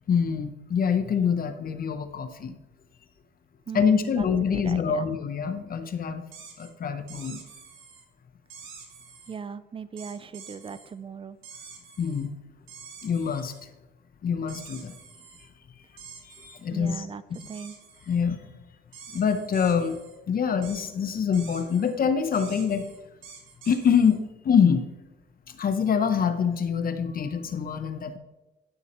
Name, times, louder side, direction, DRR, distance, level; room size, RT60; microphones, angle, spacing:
voice 1, 0.1-2.6 3.7-6.2 6.6-7.4 12.0-12.3 13.0-13.5 14.2-15.0 16.2-17.0 18.1-18.4 19.1-20.0 20.3-22.9 23.7-24.9 25.5-28.2, left 6 dB, 45° left, 9 dB, 0.7 m, -25 dB
voice 2, 3.7-4.3 4.5-5.1 9.3-11.4 16.7-17.2 17.5-17.8, right 6 dB, 30° right, 15 dB, 0.3 m, -38 dB
sound 1, 6.3-6.7 7.1-8.0 8.5-9.4 10.0-10.9 11.4-12.3 12.7-13.6 14.5-15.5 16.0-16.6 17.3-18.2 18.9-20.2 20.6-20.9 21.3-21.9 22.3-24.2, right 6 dB, 85° right, 1.4 m, -47 dB
10.5 x 6.3 x 3.0 m, 1.1 s
cardioid pair, 90°, 20 cm